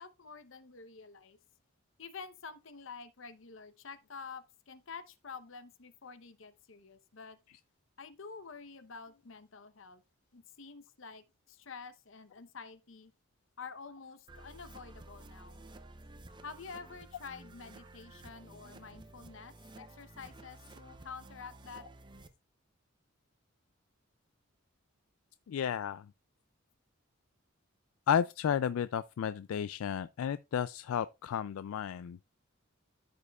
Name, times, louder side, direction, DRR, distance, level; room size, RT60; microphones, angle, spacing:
voice 1, 0.0-1.4 2.0-7.4 8.0-10.0 10.3-13.1 13.6-15.7 16.4-21.9, left 5 dB, 65° left, 0.8 m, -48 dB
sound 1, 14.3-22.3, right 2 dB, 20° right, 0.6 m, -53 dB
voice 2, 25.5-26.1 28.1-32.2, left 8 dB, 85° left, 0.3 m, -32 dB
14.0 x 5.2 x 2.3 m
head